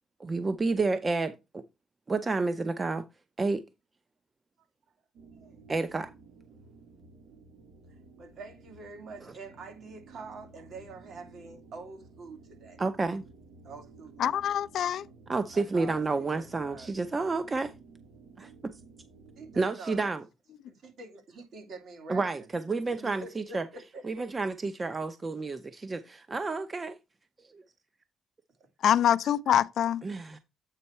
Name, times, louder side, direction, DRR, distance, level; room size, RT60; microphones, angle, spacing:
voice 1, 0.2-1.3 2.1-3.0 3.4-3.6 5.7-6.1 12.8-13.2 15.3-17.7 18.4-18.5 19.6-20.2 22.1-23.6 24.0-27.0 27.5-27.6 30.0-30.4, right 3 dB, 30° right, 0.7 m, -30 dB
sound 1, 5.1-19.6, right 4 dB, 85° right, 3.3 m, -54 dB
voice 2, 7.9-12.8 13.6-14.4 15.5-16.9 17.2-17.3 19.4-20.0 20.7-22.5 23.0-24.3, right 3 dB, 65° right, 2.6 m, -46 dB
voice 3, 14.2-15.1 28.8-30.0, left 10 dB, 70° left, 0.3 m, -25 dB
8.3 x 4.4 x 4.3 m
cardioid pair, 90°, 0 cm